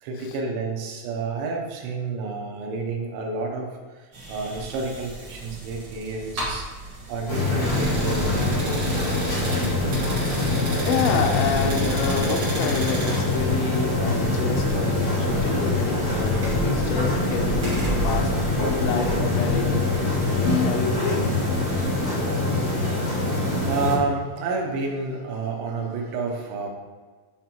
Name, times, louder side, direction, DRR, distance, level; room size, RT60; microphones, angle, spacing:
voice 1, 0.0-6.7 7.1-9.0 21.8-26.7, right 3 dB, 80° right, 0 dB, 3.0 m, -30 dB
sound 1, 4.1-21.8, right 2 dB, 50° right, 1.6 m, -34 dB
sound 2, 7.3-23.9, left 2 dB, 65° left, 1.0 m, -24 dB
voice 2, 10.8-18.3 18.7-19.8 20.2-21.3, left 6 dB, 90° left, 2 dB, 3.2 m, -28 dB
9.9 x 3.8 x 2.9 m, 1.4 s
omnidirectional pair, 5.6 m